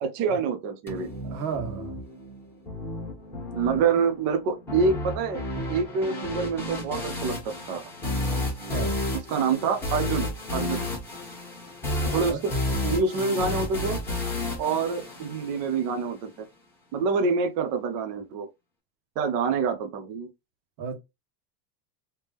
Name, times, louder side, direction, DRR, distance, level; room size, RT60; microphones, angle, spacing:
voice 1, 0.0-1.1 3.5-5.4 5.7-7.8 9.3-10.9 12.0-12.4 12.8-14.0 14.6-16.5 16.9-18.5 19.2-20.3, right 5 dB, 40° right, 0.5 m, -26 dB
sound 1, 0.9-15.9, left 2 dB, 5° left, 1.5 m, -32 dB
voice 2, 1.2-2.0 8.7-9.0 12.3-12.4 20.8-21.0, right 6 dB, 85° right, 1.3 m, -33 dB
3.4 x 2.8 x 3.2 m
supercardioid pair, 165°, 49 cm